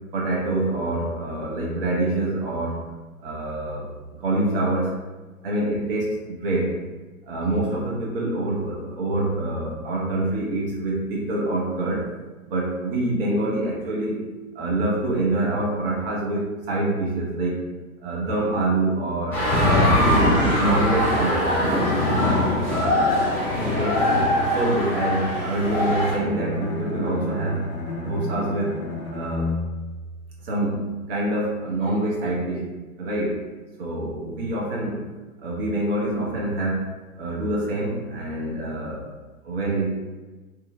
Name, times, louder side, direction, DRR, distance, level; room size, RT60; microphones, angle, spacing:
voice 1, 0.1-2.8 3.2-3.9 4.2-4.9 5.4-6.8 7.3-12.1 12.5-14.2 14.5-17.6 18.0-20.2 20.6-21.9 22.6-23.2 23.6-24.1 24.5-27.7 27.9-28.8 29.1-29.5 30.4-32.7 33.0-33.4 33.8-35.0 35.4-39.1 39.4-40.0, right 2 dB, 40° right, -4 dB, 0.8 m, -26 dB
sound 1, 19.3-26.2, left 1 dB, 5° left, 0.6 m, -21 dB
Bowed string instrument, 25.8-30.9, left 3 dB, 50° left, 0.7 m, -33 dB
3.0 x 2.1 x 2.2 m, 1.3 s
figure-of-eight pair, 115°, 43 cm